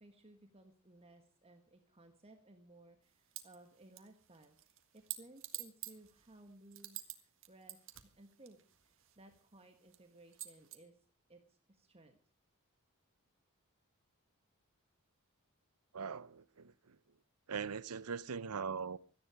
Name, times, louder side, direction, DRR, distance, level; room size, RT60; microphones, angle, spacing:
voice 1, 0.0-12.2, right 2 dB, 25° right, 1.5 m, -60 dB
sound 1, 3.3-3.6 4.0-7.2 7.4-9.4 9.9-10.0 10.3-10.8, right 14 dB, 65° right, 1.8 m, -47 dB
voice 2, 15.9-17.0 17.5-19.0, right 6 dB, 85° right, 0.8 m, -41 dB
17.0 x 13.5 x 4.9 m
head